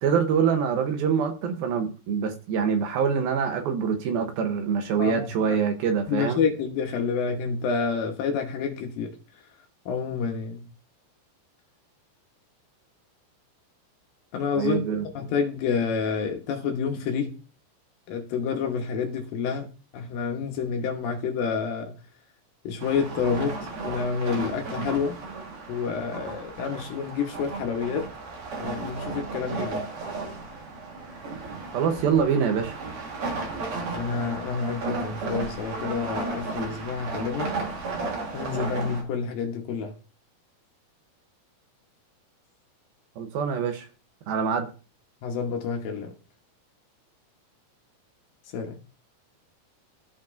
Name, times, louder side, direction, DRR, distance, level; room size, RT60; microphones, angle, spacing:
voice 1, 0.0-6.4 14.6-15.1 31.7-32.7 43.2-43.9 44.3-44.7, right 7 dB, 75° right, 2.6 m, -25 dB
voice 2, 5.0-5.6 6.1-9.1 9.9-10.7 14.3-14.8 15.2-17.3 18.1-19.7 19.9-21.9 22.6-23.6 23.8-25.2 25.7-28.1 28.6-29.8 33.9-37.5 38.3-39.9 45.2-46.1 48.5-48.8, left 6 dB, 70° left, 2.6 m, -28 dB
sound 1, 22.8-39.0, right 3 dB, 50° right, 1.8 m, -34 dB
14.0 x 5.2 x 2.6 m
omnidirectional pair, 4.6 m